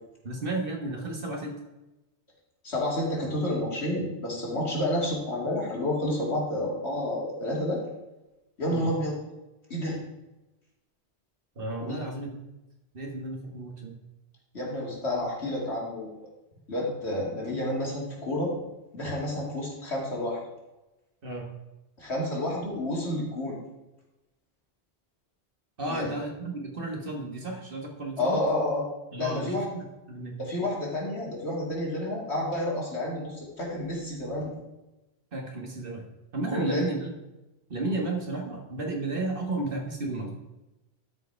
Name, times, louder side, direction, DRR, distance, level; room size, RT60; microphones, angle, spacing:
voice 1, 0.2-1.5 8.7-8.9 11.6-12.4 12.9-14.0 21.2-21.5 25.8-28.4 29.1-30.4 35.3-36.1 36.3-37.2 37.7-40.3, right 2 dB, 55° right, 1 dB, 1.7 m, -33 dB
voice 2, 2.6-7.8 8.6-9.1 9.7-10.0 11.9-12.1 14.5-16.1 16.7-18.5 18.9-20.4 22.0-23.6 25.9-26.1 28.2-28.9 29.2-29.7 30.4-34.5 36.5-36.8, left 1 dB, 75° left, -4 dB, 2.8 m, -30 dB
12.0 x 5.0 x 4.6 m, 1.0 s
omnidirectional pair, 1.1 m